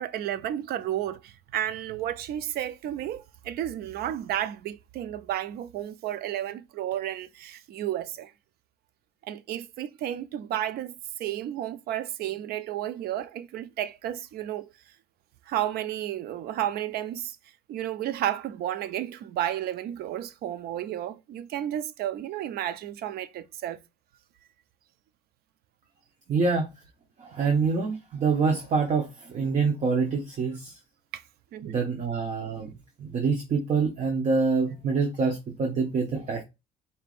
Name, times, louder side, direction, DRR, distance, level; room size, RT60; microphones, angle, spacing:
voice 1, 0.0-8.3 9.2-10.9 11.2-14.7 15.5-17.4 17.7-23.8 31.1-31.2 31.5-31.8, right 12 dB, 65° right, 0.5 m, -32 dB
voice 2, 26.3-26.7 27.2-30.7 31.7-32.7 33.0-36.4, right 4 dB, 45° right, 1.0 m, -26 dB
4.4 x 3.4 x 2.5 m
cardioid pair, 110°, 17 cm